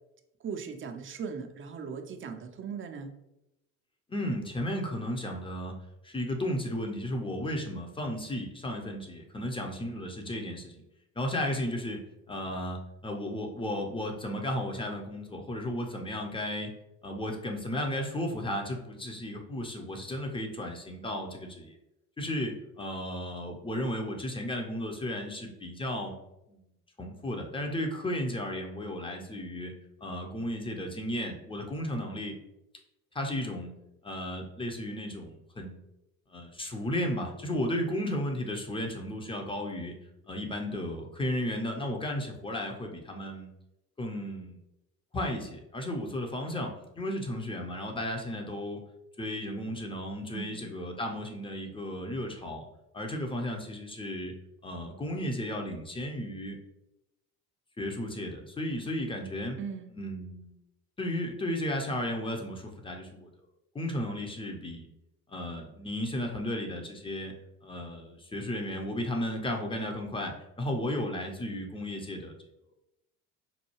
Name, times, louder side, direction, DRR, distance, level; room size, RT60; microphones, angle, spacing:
voice 1, 0.4-3.1 50.3-50.6 59.6-59.9, right 6 dB, 30° right, 5 dB, 0.5 m, -38 dB
voice 2, 4.1-5.7 6.0-10.8 11.2-12.0 12.3-16.8 17.0-21.8 22.2-26.1 26.5-26.6 27.0-29.7 30.0-32.3 33.1-33.7 34.0-35.8 36.3-39.9 40.3-43.5 44.0-44.6 45.1-48.8 49.2-52.7 52.9-54.3 54.6-56.6 57.8-59.6 59.9-60.5 61.0-63.3 63.7-64.9 65.3-67.3 67.6-72.3, left 1 dB, 10° left, 2 dB, 0.7 m, -34 dB
5.4 x 2.2 x 3.0 m, 0.89 s
hypercardioid pair, 60°, 44 cm